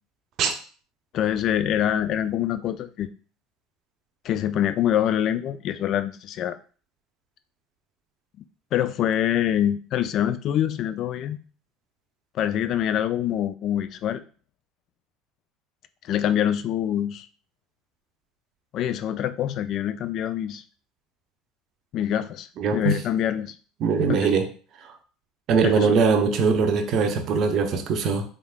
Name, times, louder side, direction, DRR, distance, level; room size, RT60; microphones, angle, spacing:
voice 1, 1.1-3.1 4.2-6.6 8.7-11.4 12.3-14.2 16.0-17.3 18.7-20.6 21.9-22.5 22.7-23.5 24.1-24.3 25.6-25.9, left 10 dB, 55° left, 12 dB, 0.3 m, -25 dB
voice 2, 22.6-23.0 23.8-24.5 24.8-24.9 25.5-28.2, right 5 dB, 50° right, 5 dB, 0.6 m, -21 dB
3.6 x 3.4 x 2.4 m, 0.39 s
supercardioid pair, 95°, 0 cm